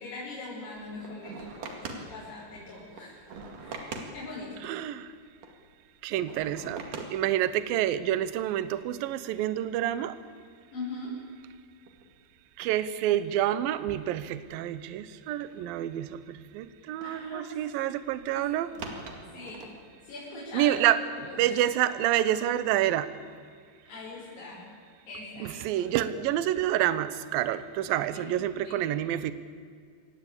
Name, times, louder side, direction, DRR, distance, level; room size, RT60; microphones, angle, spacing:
voice 1, 0.0-3.2 3.6-4.6 10.7-11.1 17.0-17.6 18.3-18.8 19.3-19.6 20.0-20.8 21.2-21.6 23.9-24.6 25.1-25.8 28.1-28.3 28.6-28.8, left 3 dB, 70° left, -8 dB, 8.1 m, -41 dB
sound 1, 0.8-7.9 8.3-8.6 8.9-9.0 9.6-10.1 10.5-10.6 11.1-11.5 11.9-12.3 12.6-13.3 14.1-15.1 15.4-16.2 17.0-20.1, right 3 dB, 55° right, 3.3 m, -44 dB
voice 2, 4.6-5.1 6.0-10.2 12.6-18.7 20.5-23.1 25.4-29.3, right 12 dB, 75° right, 13 dB, 2.3 m, -28 dB
24.5 x 19.0 x 8.6 m, 2.1 s
omnidirectional pair, 5.0 m